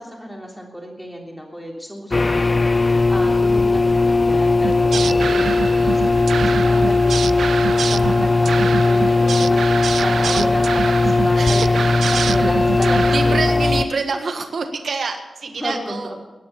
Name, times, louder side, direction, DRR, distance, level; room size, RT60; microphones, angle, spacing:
voice 1, 0.0-2.6 3.1-7.5 7.9-9.7 9.9-13.7 15.6-16.2, equal, 5° left, 0 dB, 3.2 m, -31 dB
sound 1, 2.1-13.8, left 3 dB, 25° left, 0.5 m, -17 dB
sound 2, 4.6-13.4, right 6 dB, 85° right, 0.4 m, -26 dB
voice 2, 4.8-5.6 8.0-8.1 11.4-11.9 13.1-16.1, right 4 dB, 60° right, 5 dB, 1.5 m, -27 dB
19.0 x 10.5 x 7.0 m, 1.1 s
wide cardioid pair, 160°, 0 cm